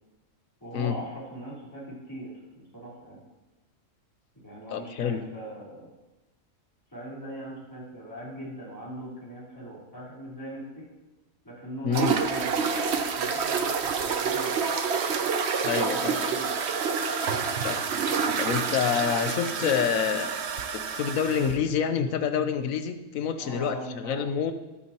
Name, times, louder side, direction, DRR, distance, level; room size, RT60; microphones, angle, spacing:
voice 1, 0.6-3.2 4.4-5.9 6.9-10.8 11.4-14.7 15.7-16.7 23.4-24.3, right 1 dB, 15° left, -7 dB, 3.9 m, -40 dB
voice 2, 4.7-5.2 11.8-12.1 15.6-16.1 17.6-17.8 18.4-20.4 20.7-24.5, left 7 dB, 75° left, 9 dB, 1.2 m, -27 dB
sound 1, 11.9-21.6, right 5 dB, 55° right, 1.0 m, -28 dB
21.0 x 8.5 x 3.0 m, 1.1 s
omnidirectional pair, 1.5 m